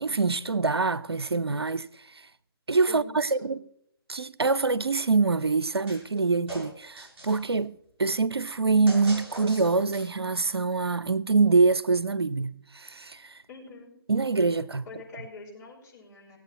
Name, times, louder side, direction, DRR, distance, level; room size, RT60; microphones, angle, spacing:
voice 1, 0.0-1.9 2.1-2.2 2.7-3.6 4.1-7.7 8.0-13.4 14.1-14.8, right 4 dB, 85° right, 0.6 m, -25 dB
voice 2, 2.9-3.5 13.5-13.9 14.9-16.4, left 4 dB, 45° left, 5.4 m, -45 dB
sound 1, 5.9-6.2 6.5-7.5 8.9-10.3, right 1 dB, 10° right, 6.5 m, -41 dB
17.5 x 8.4 x 4.6 m
figure-of-eight pair, 135°, 13 cm